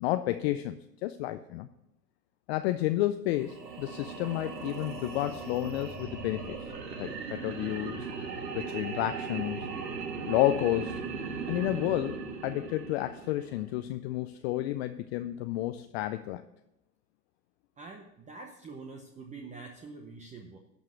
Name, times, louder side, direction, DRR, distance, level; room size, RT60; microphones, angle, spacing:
voice 1, 0.0-1.7 2.5-6.6 7.0-8.0 8.5-9.7 10.2-10.9 11.5-16.4, left 15 dB, 40° left, 10 dB, 0.5 m, -31 dB
sound 1, 3.0-3.1 3.7-6.8, left 1 dB, 25° left, 1.9 m, -51 dB
sound 2, 3.3-13.7, right 5 dB, 90° right, 1.9 m, -38 dB
voice 2, 17.8-20.6, right 4 dB, 15° right, 3 dB, 0.8 m, -45 dB
11.5 x 5.4 x 6.2 m, 0.90 s
hypercardioid pair, 120°, 49 cm